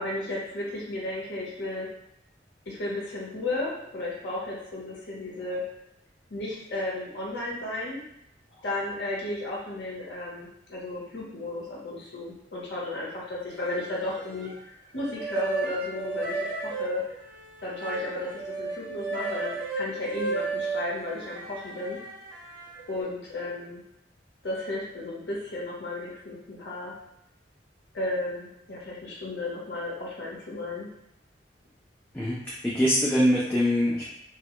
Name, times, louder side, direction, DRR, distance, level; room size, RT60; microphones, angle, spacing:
voice 1, 0.0-1.9 2.7-5.6 6.3-8.0 8.6-14.5 14.9-17.0 17.6-22.0 22.9-23.8 24.4-26.9 27.9-30.9, left 2 dB, 65° left, -5 dB, 0.8 m, -34 dB
sound 1, 13.5-14.7 14.9-23.0, right 3 dB, 70° right, 0.5 m, -34 dB
voice 2, 32.6-34.1, equal, 10° left, -7 dB, 0.3 m, -23 dB
2.2 x 2.0 x 2.9 m, 0.79 s
head